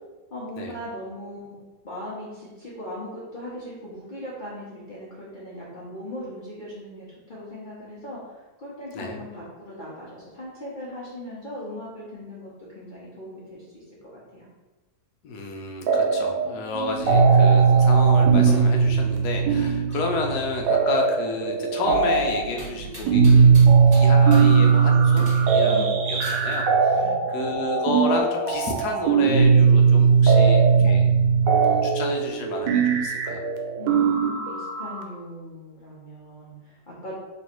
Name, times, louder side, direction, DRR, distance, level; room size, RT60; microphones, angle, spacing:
voice 1, 0.3-14.5 25.6-25.9 26.9-27.2 33.8-37.2, left 1 dB, 40° left, -8 dB, 0.8 m, -39 dB
voice 2, 15.2-23.5 23.8-31.1 31.6-33.4, left 3 dB, 70° left, 2 dB, 1.2 m, -31 dB
sound 1, 15.9-16.5 16.7-35.0, right 5 dB, 80° right, 1.2 m, -19 dB
sound 2, 18.2-26.6, right 1 dB, 30° right, 1.1 m, -43 dB
3.2 x 3.1 x 4.4 m, 1.2 s
omnidirectional pair, 1.8 m